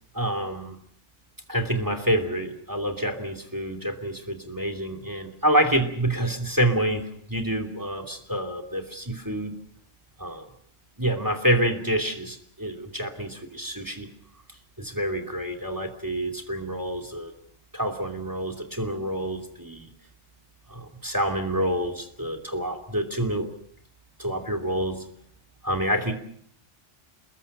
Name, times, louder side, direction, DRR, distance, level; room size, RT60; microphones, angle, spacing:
voice 1, 0.1-0.8 1.5-9.6 10.2-10.4 11.0-14.1 14.8-17.3 17.7-19.9 20.7-23.5 24.2-25.0 25.6-26.1, right 1 dB, 15° right, 8 dB, 2.8 m, -27 dB
29.5 x 21.5 x 5.5 m, 0.68 s
omnidirectional pair, 1.2 m